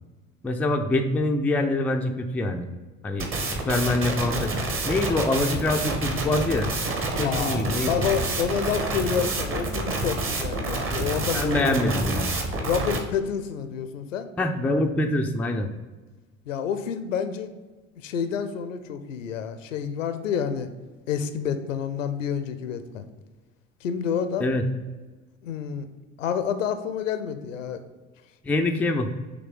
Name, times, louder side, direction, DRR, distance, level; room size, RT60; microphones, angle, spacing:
voice 1, 0.4-2.7 3.0-3.3 3.6-4.5 4.9-6.8 7.2-8.0 11.3-12.4 14.4-15.7 24.4-24.6 28.4-29.1, left 2 dB, 5° left, 4 dB, 0.4 m, -25 dB
sound 1, 3.2-13.0, right 2 dB, 35° right, 1.1 m, -28 dB
voice 2, 7.2-11.9 12.6-14.3 16.5-17.5 18.0-20.7 21.1-23.0 23.8-24.5 25.4-25.9 26.2-27.8, left 7 dB, 75° left, 9 dB, 0.6 m, -29 dB
6.0 x 3.2 x 5.0 m, 1.3 s
figure-of-eight pair, 60°, 39 cm